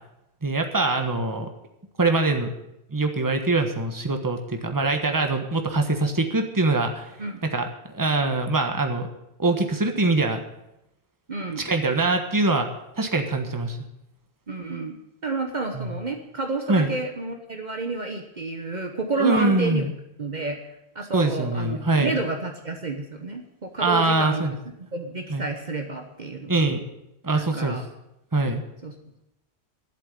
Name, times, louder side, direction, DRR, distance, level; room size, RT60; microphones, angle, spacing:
voice 1, 0.4-1.5 2.0-2.5 2.9-7.1 7.4-7.7 7.9-9.1 9.4-10.4 11.6-12.7 13.0-13.8 15.7-15.9 16.7-16.9 19.2-19.9 21.1-22.2 23.8-24.5 25.3-25.4 26.5-26.8 27.2-27.8 28.3-28.6, right 2 dB, 20° right, 5 dB, 1.3 m, -23 dB
voice 2, 11.3-11.6 14.5-19.9 20.2-24.5 24.9-26.5 27.3-27.9 28.8-28.9, right 3 dB, 45° right, 4 dB, 1.2 m, -30 dB
11.5 x 7.7 x 9.9 m, 0.87 s
omnidirectional pair, 1.1 m